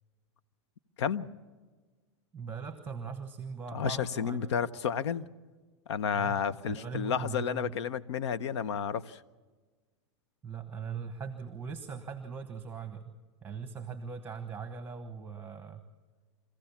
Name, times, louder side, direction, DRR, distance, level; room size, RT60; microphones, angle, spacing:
voice 1, 1.0-1.3 3.7-5.2 5.9-9.2, left 7 dB, 80° left, 0.8 m, -31 dB
voice 2, 2.3-4.5 6.1-7.8 10.4-13.1 13.4-15.8, right 5 dB, 15° right, 1.3 m, -40 dB
24.5 x 15.0 x 7.2 m
hypercardioid pair, 120°, 14 cm